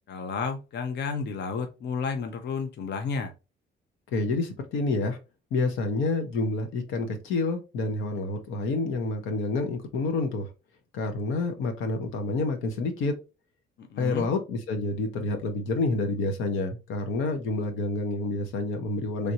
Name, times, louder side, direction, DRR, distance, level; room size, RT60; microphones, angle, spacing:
voice 1, 0.1-3.3 13.8-14.3, left 5 dB, 60° left, 0.7 m, -32 dB
voice 2, 4.1-5.2 5.5-10.5 10.9-13.2 14.0-19.3, left 3 dB, 90° left, 0.9 m, -28 dB
3.3 x 2.6 x 2.9 m
cardioid pair, 90°, 20 cm